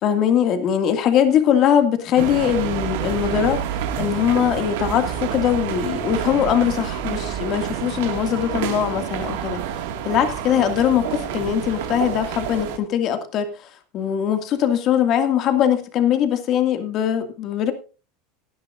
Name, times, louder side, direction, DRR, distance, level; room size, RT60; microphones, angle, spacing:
voice 1, 0.0-3.6 4.0-9.6 10.1-13.5 13.9-17.7, left 9 dB, 45° left, 7 dB, 2.3 m, -21 dB
sound 1, 2.2-12.8, right 9 dB, 75° right, 2.1 m, -28 dB
17.5 x 11.0 x 2.6 m, 0.34 s
supercardioid pair, 110°, 0 cm